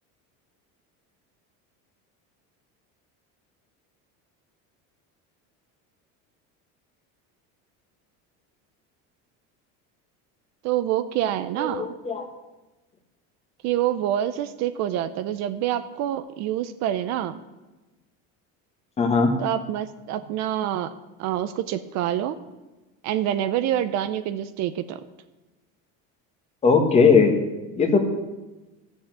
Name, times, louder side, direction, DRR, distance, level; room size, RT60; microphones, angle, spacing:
voice 1, 10.6-11.9 13.6-17.4 19.4-20.9 21.2-22.4 23.0-25.0, right 11 dB, 50° right, 12 dB, 0.6 m, -26 dB
voice 2, 11.6-12.3 19.0-19.3 26.6-27.4 27.8-28.0, left 5 dB, 20° left, 5 dB, 1.2 m, -18 dB
13.0 x 7.1 x 7.4 m, 1.1 s
cardioid pair, 180°, 35 cm